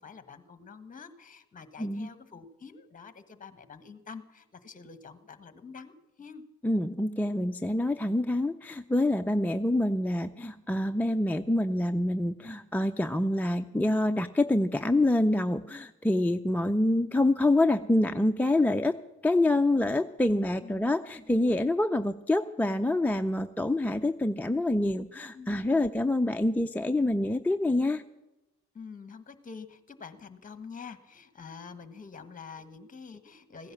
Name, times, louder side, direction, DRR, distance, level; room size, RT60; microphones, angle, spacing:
voice 1, 0.0-6.4 20.6-20.8 25.3-26.0 28.7-33.7, left 5 dB, 25° left, 11 dB, 1.3 m, -47 dB
voice 2, 1.8-2.1 6.6-19.0 19.2-28.0, left 1 dB, 5° left, 6 dB, 0.4 m, -26 dB
15.5 x 10.5 x 7.2 m, 0.97 s
cardioid pair, 90°, 30 cm